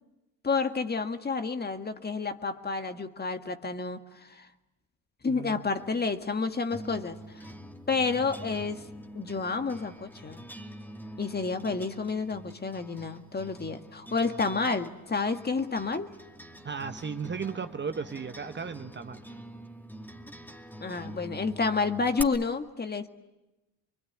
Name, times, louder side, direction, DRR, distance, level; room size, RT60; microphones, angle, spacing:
voice 1, 0.4-4.5 5.2-7.4 7.9-8.8 9.2-10.4 11.2-16.1 20.8-23.1, left 4 dB, 25° left, 1.9 m, -30 dB
voice 2, 5.3-5.7 16.6-19.4, right 5 dB, 30° right, 1.2 m, -36 dB
sound 1, 5.8-22.2, equal, 5° left, 2.6 m, -45 dB
26.0 x 23.5 x 9.7 m
supercardioid pair, 70°, 37 cm